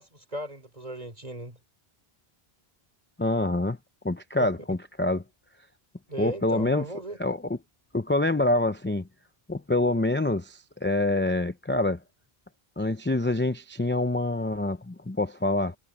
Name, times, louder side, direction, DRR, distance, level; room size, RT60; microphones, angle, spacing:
voice 1, 0.0-1.6 4.4-4.5 6.1-7.2, right 1 dB, 40° right, 3.8 m, -36 dB
voice 2, 3.2-3.8 4.0-5.2 6.2-6.9 7.2-7.6 7.9-9.1 9.5-12.0 12.8-15.8, left 2 dB, 15° left, 0.6 m, -26 dB
omnidirectional pair, 1.0 m